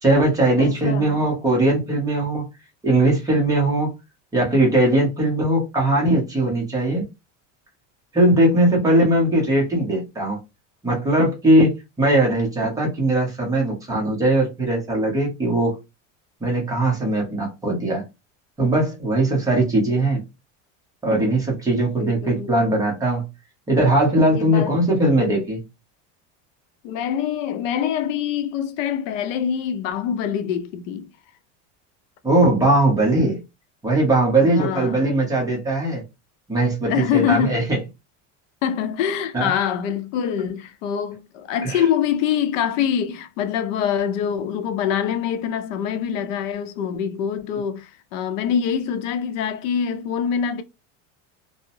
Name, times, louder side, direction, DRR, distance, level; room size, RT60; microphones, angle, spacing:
voice 1, 0.0-2.4 2.8-3.9 4.3-7.0 8.1-10.4 10.8-15.8 16.4-18.0 18.6-20.2 21.0-23.2 23.7-25.6 32.2-33.4 33.8-36.0 36.5-37.8 39.3-39.5 41.6-41.8, right 1 dB, 10° right, 0.7 m, -19 dB
voice 2, 0.6-1.2 22.0-22.6 24.3-24.8 26.8-31.1 34.4-35.0 36.9-37.7 38.6-50.6, left 8 dB, 85° left, 0.6 m, -25 dB
2.7 x 2.0 x 2.6 m
cardioid pair, 175°, 37 cm